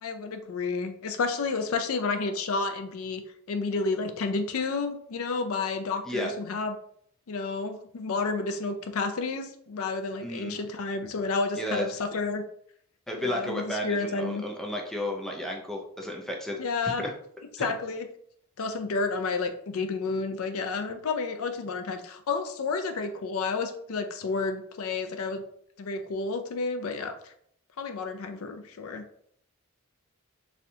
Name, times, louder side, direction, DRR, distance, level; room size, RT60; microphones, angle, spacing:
voice 1, 0.0-3.2 3.5-6.8 7.3-12.4 13.2-14.4 16.6-17.0 17.5-18.1 18.6-25.4 25.8-27.3 27.8-29.0, left 4 dB, 65° left, 7 dB, 0.4 m, -30 dB
voice 2, 10.2-10.6 11.6-11.8 13.1-17.1 17.6-17.7, left 1 dB, ahead, 0 dB, 0.4 m, -33 dB
4.2 x 2.4 x 2.6 m, 0.66 s
head